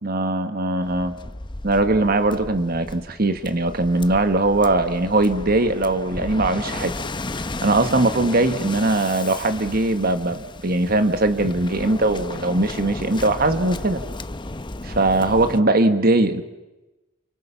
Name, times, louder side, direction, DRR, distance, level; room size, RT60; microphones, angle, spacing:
voice 1, 0.0-1.1 1.6-6.9 7.6-14.0 14.8-16.4, right 2 dB, 50° right, 9 dB, 1.4 m, -20 dB
Waves surf, 0.8-15.6, left 2 dB, 25° left, 0.8 m, -34 dB
29.5 x 28.5 x 5.7 m, 1.1 s
head